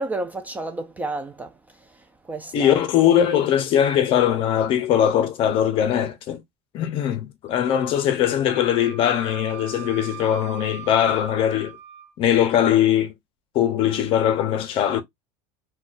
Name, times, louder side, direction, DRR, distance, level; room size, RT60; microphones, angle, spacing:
voice 1, 0.0-1.5 2.3-2.8 8.4-8.6, right 2 dB, 10° right, 0.3 m, -31 dB
voice 2, 2.5-6.4 6.7-11.8 12.2-13.1 13.5-15.0, left 10 dB, 45° left, 0.6 m, -21 dB
Wind instrument woodwind instrument, 8.5-12.1, right 10 dB, 60° right, 0.8 m, -40 dB
3.9 x 2.2 x 2.4 m
cardioid pair, 150°, 13 cm